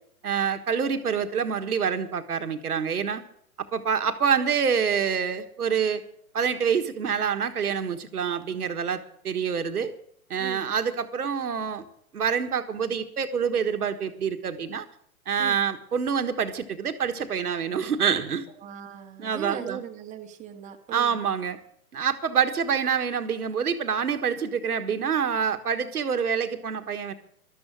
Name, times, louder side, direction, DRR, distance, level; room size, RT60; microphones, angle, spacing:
voice 1, 0.2-3.2 3.7-6.0 6.3-9.9 10.3-11.8 12.1-14.8 15.3-18.5 19.2-19.8 20.9-21.6 21.9-27.1, right 7 dB, 75° right, 7 dB, 1.6 m, -26 dB
voice 2, 10.4-10.7 15.4-15.6 18.6-21.2, right 9 dB, 15° right, 2 dB, 1.7 m, -39 dB
13.0 x 12.5 x 6.3 m, 0.67 s
hypercardioid pair, 120°, 45 cm